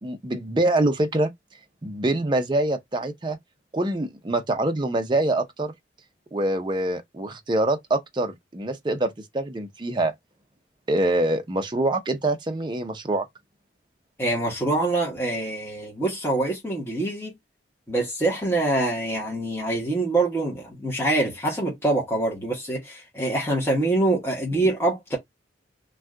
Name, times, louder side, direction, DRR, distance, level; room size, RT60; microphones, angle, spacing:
voice 1, 0.0-1.3 1.8-3.4 3.7-5.7 6.3-10.1 10.9-13.3 24.5-24.7, right 2 dB, 25° right, 0.5 m, -25 dB
voice 2, 14.2-17.3 17.9-25.2, right 2 dB, 10° left, 1.0 m, -25 dB
2.6 x 2.3 x 3.5 m
head